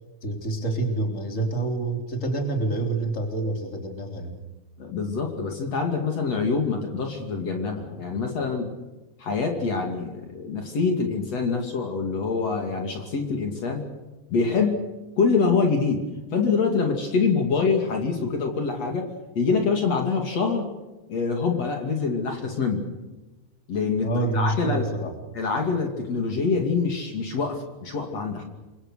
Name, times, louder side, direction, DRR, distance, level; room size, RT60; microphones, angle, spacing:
voice 1, 0.2-4.3 24.0-25.2, right 2 dB, 25° left, 4 dB, 3.8 m, -27 dB
voice 2, 4.8-8.7 9.2-13.8 14.3-14.8 15.2-16.0 16.3-19.1 19.4-20.7 21.1-22.8 23.7-24.8 25.3-28.4, left 4 dB, 60° left, 3 dB, 3.8 m, -25 dB
28.5 x 24.5 x 6.5 m, 1.1 s
omnidirectional pair, 3.4 m